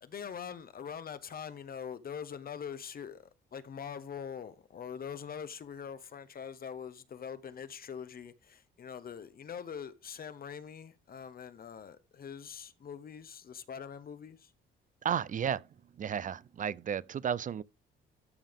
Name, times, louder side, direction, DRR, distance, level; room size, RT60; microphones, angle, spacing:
voice 1, 0.0-14.5, left 7 dB, 50° left, 0.9 m, -43 dB
voice 2, 15.0-15.7 16.0-17.6, right 8 dB, 40° right, 0.4 m, -33 dB
13.0 x 5.4 x 3.6 m
cardioid pair, 90°, 20 cm